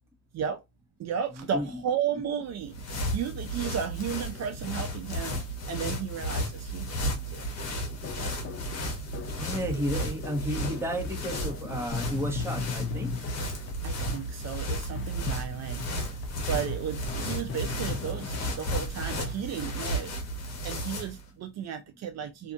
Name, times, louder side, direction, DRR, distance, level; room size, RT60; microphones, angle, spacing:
voice 1, 1.0-5.4 5.7-7.4 8.1-8.4 13.8-16.1 16.5-20.1 20.6-22.5, right 8 dB, 60° right, 0.5 m, -34 dB
sound 1, 2.5-21.2, equal, 60° left, 1.0 m, -34 dB
sound 2, 7.6-13.8 14.1-15.5 15.8-19.0 19.2-19.5, left 5 dB, 45° left, 0.6 m, -38 dB
voice 2, 9.4-13.1, equal, 10° right, 1.1 m, -32 dB
2.6 x 2.5 x 2.5 m
cardioid pair, 90°, 30 cm